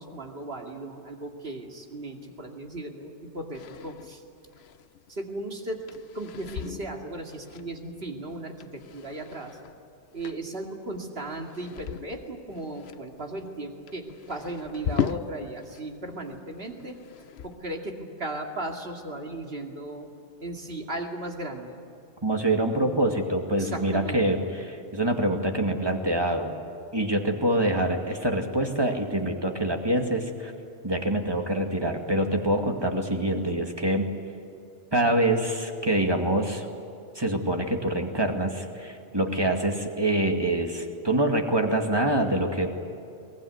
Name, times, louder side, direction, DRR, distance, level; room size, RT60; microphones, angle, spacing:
voice 1, 0.0-4.2 5.1-5.8 6.1-9.6 10.1-17.0 17.4-20.1 20.4-21.8 23.6-24.4, right 1 dB, 60° right, 2 dB, 2.6 m, -36 dB
sound 1, 3.5-15.8 16.1-17.7, left 9 dB, 65° left, 1.0 m, -38 dB
voice 2, 22.2-26.5 26.9-30.5 30.8-34.1 34.9-36.7 37.2-42.7, right 1 dB, 20° right, 3 dB, 2.2 m, -25 dB
23.0 x 20.0 x 9.7 m, 2.7 s
omnidirectional pair, 1.2 m